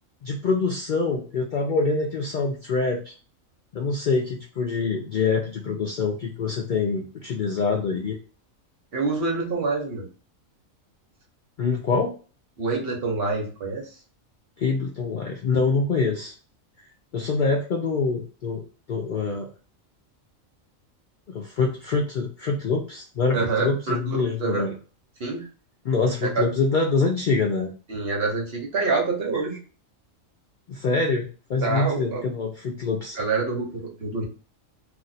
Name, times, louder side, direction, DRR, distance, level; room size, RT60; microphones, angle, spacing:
voice 1, 0.2-3.1 3.7-8.2 11.6-12.1 14.6-16.4 17.1-19.5 21.3-24.7 25.8-27.7 30.7-33.2, left 4 dB, 85° left, 0 dB, 0.4 m, -25 dB
voice 2, 8.9-10.1 12.6-13.9 23.3-24.7 25.2-25.4 26.2-26.4 27.9-29.6 31.6-32.2 33.1-34.2, right 4 dB, 50° right, -1 dB, 1.0 m, -26 dB
2.5 x 2.4 x 4.0 m, 0.38 s
omnidirectional pair, 1.4 m